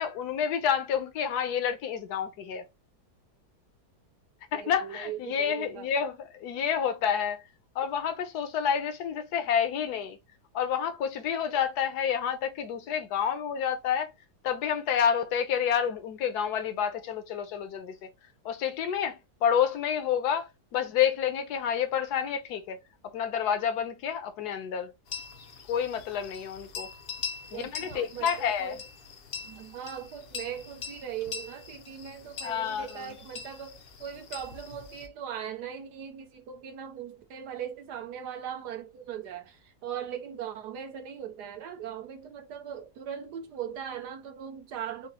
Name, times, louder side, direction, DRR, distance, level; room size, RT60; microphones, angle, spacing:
voice 1, 0.0-2.6 4.5-7.4 7.7-10.2 10.5-14.1 14.4-18.1 18.4-22.8 23.1-24.9 25.7-26.9 27.5-28.7 32.4-33.1, left 8 dB, 75° left, 1.2 m, -29 dB
voice 2, 4.5-5.9 27.5-28.9 29.4-45.1, right 9 dB, 80° right, 1.3 m, -39 dB
sound 1, 25.1-35.1, left 6 dB, 60° left, 0.6 m, -42 dB
5.1 x 2.1 x 2.8 m
omnidirectional pair, 1.8 m